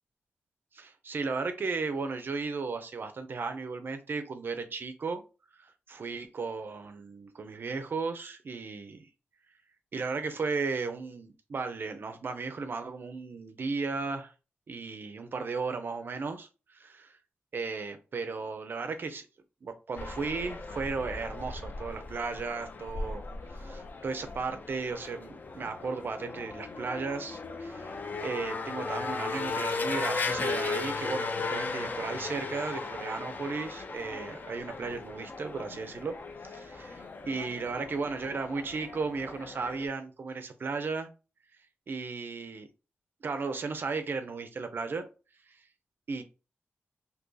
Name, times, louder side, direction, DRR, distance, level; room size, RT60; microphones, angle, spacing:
voice 1, 0.7-5.2 5.5-9.0 9.9-14.3 14.7-17.2 17.5-19.3 19.6-23.2 23.5-36.2 36.4-41.1 41.9-42.7 43.2-45.0 45.5-45.6 46.1-46.2, right 4 dB, 50° right, 0.4 m, -35 dB
sound 1, 20.0-39.9, left 3 dB, 45° left, 0.4 m, -37 dB
2.7 x 2.6 x 3.7 m
wide cardioid pair, 130°, 4 cm